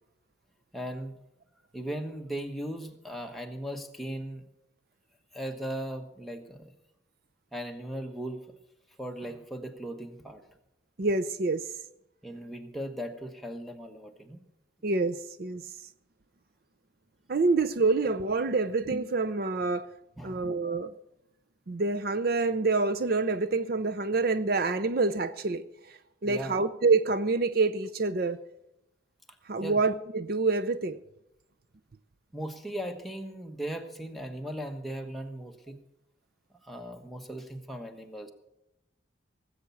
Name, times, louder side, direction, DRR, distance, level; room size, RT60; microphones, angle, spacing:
voice 1, 0.7-1.2 1.7-4.5 5.3-6.7 7.5-8.4 9.0-10.4 12.2-14.4 20.2-20.5 26.2-26.6 29.6-29.8 32.3-35.8 36.6-38.3, right 1 dB, ahead, 1.2 m, -38 dB
voice 2, 11.0-11.7 14.8-15.6 17.3-19.9 20.2-20.9 21.7-25.6 26.2-28.4 29.5-31.0, right 3 dB, 50° right, 0.5 m, -27 dB
18.0 x 8.2 x 7.0 m
head